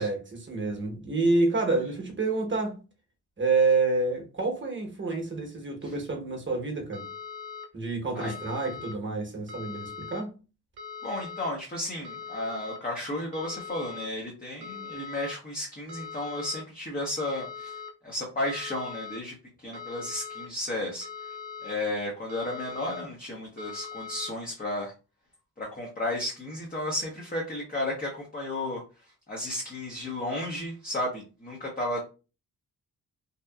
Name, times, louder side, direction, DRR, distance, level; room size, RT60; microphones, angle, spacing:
voice 1, 0.0-2.8 3.4-7.1 7.7-10.3, right 3 dB, 30° right, 1.0 m, -28 dB
sound 1, 6.9-7.7 8.2-8.9 9.5-10.2 10.8-11.5 12.0-12.8 13.3-14.1 14.6-15.3 15.9-16.6 17.2-17.9 18.4-19.2 19.7-20.5 21.0-21.7 22.3-23.0 23.6-24.3, left 6 dB, 70° right, 0.7 m, -40 dB
voice 2, 11.0-21.1 21.6-24.9 25.6-28.8 29.3-32.1, left 1 dB, 20° left, 0.8 m, -33 dB
2.8 x 2.2 x 2.3 m
cardioid pair, 50°, 39 cm